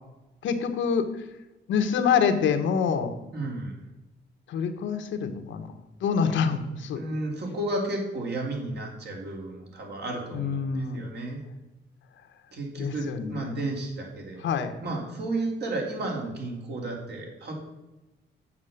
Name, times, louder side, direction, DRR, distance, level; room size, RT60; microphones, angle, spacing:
voice 1, 0.4-1.1 1.7-3.1 4.5-5.7 6.0-7.0 10.3-11.0 12.8-13.6 14.4-14.7, left 6 dB, 85° left, 7 dB, 1.2 m, -26 dB
voice 2, 3.3-3.7 6.9-11.4 12.5-14.4 14.8-17.5, right 2 dB, 60° right, 0 dB, 3.1 m, -33 dB
7.4 x 7.1 x 6.6 m, 1.0 s
cardioid pair, 105°, 19 cm